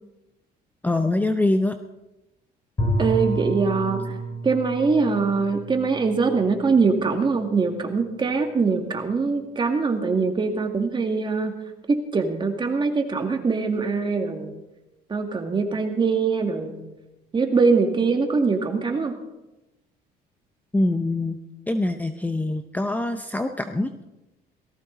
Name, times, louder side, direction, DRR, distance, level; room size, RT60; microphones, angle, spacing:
voice 1, 0.8-1.8 20.7-21.4 21.7-24.0, left 2 dB, 10° left, 8 dB, 0.7 m, -24 dB
Bowed string instrument, 2.8-7.6, right 1 dB, 25° left, 5.0 m, -30 dB
voice 2, 3.0-4.2 4.4-11.5 11.9-14.5 15.1-16.8 17.3-19.1, right 4 dB, 30° right, 4 dB, 2.1 m, -23 dB
18.0 x 14.5 x 4.0 m, 1.0 s
cardioid pair, 110°, 17 cm